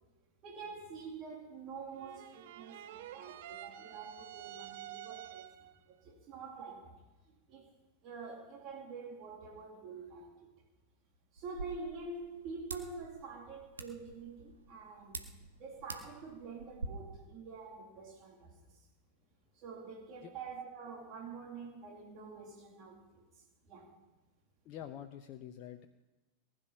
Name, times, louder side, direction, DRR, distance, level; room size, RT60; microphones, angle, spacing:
voice 1, 0.4-7.0 7.5-7.7 8.0-10.5 11.3-15.3 15.6-18.6 19.6-23.2 23.7-24.0, right 4 dB, 35° right, 2.5 m, -47 dB
sound 1, 1.9-5.8, right 13 dB, 55° right, 0.6 m, -49 dB
sound 2, 11.4-16.9, right 3 dB, 75° right, 1.4 m, -48 dB
voice 2, 24.6-25.9, left 10 dB, 35° left, 0.8 m, -46 dB
19.0 x 10.5 x 5.7 m
figure-of-eight pair, 90°, 0 cm